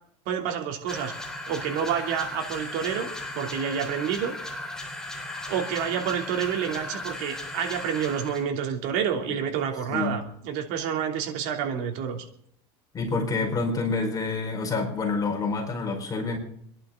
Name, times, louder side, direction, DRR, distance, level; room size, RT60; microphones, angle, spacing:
voice 1, 0.3-1.1 1.5-4.3 5.5-12.2, right 8 dB, 75° right, 3 dB, 3.0 m, -29 dB
sound 1, 0.9-8.5, left 1 dB, 5° left, 3.5 m, -36 dB
voice 2, 12.9-16.4, left 3 dB, 25° left, 3 dB, 4.9 m, -27 dB
26.5 x 11.5 x 3.9 m, 0.69 s
supercardioid pair, 120°, 14 cm